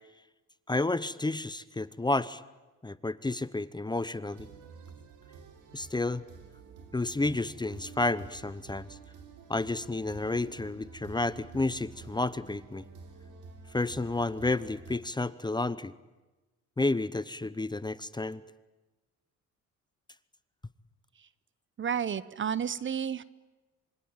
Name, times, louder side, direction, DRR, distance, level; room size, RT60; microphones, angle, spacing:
voice 1, 0.7-2.4 2.8-4.5 5.7-6.2 6.9-9.0 9.5-12.8 13.7-15.9 16.8-18.4, left 2 dB, 15° left, 16 dB, 0.9 m, -31 dB
sound 1, 4.3-15.0, right 5 dB, 85° right, 4.1 m, -50 dB
voice 2, 21.8-23.2, right 8 dB, 40° right, 17 dB, 1.0 m, -31 dB
26.5 x 24.0 x 9.0 m, 1.1 s
cardioid pair, 90°, 30 cm